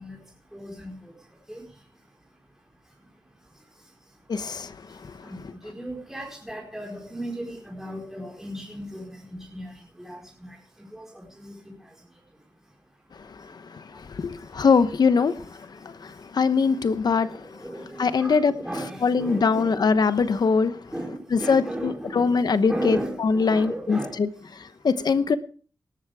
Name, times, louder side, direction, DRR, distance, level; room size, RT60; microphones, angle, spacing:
voice 1, 0.0-14.8 15.3-24.9, right 1 dB, 5° right, 4.8 m, -38 dB
voice 2, 4.3-4.7 14.2-15.3 16.3-17.3 18.0-18.5 19.0-20.7 21.5-21.6 22.2-23.0 23.2-24.0 24.8-25.4, left 5 dB, 70° left, 1.0 m, -21 dB
18.5 x 12.5 x 3.6 m
wide cardioid pair, 90°, 7 cm